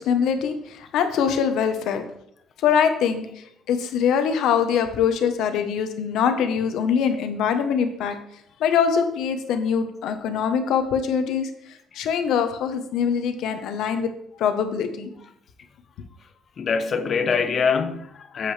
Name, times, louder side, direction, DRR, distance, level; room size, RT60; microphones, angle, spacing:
voice 1, 0.0-2.0 2.6-8.2 8.6-11.5 11.9-14.1 14.4-15.1, left 7 dB, 70° left, 1.0 m, -23 dB
voice 2, 16.6-18.5, left 5 dB, 35° left, 0.6 m, -24 dB
7.9 x 7.8 x 3.3 m
cardioid pair, 170°, 0 cm